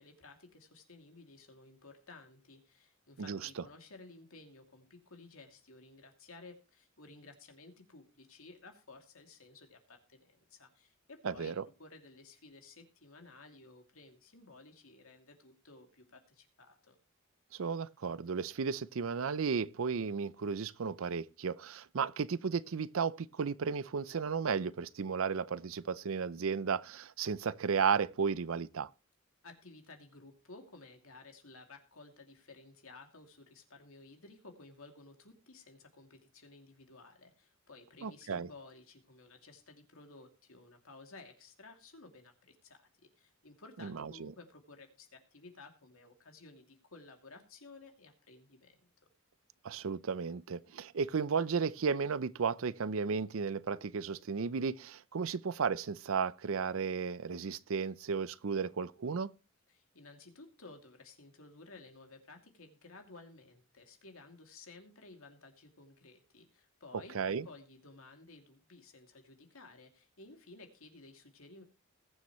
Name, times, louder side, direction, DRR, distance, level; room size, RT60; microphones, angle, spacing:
voice 1, 0.0-17.0 29.4-48.9 59.7-71.6, left 3 dB, 75° left, 2.7 m, -55 dB
voice 2, 3.2-3.6 11.2-11.6 17.5-28.9 38.0-38.5 43.8-44.3 49.6-59.3 67.1-67.5, right 5 dB, 70° right, 0.5 m, -34 dB
20.5 x 7.2 x 3.1 m
head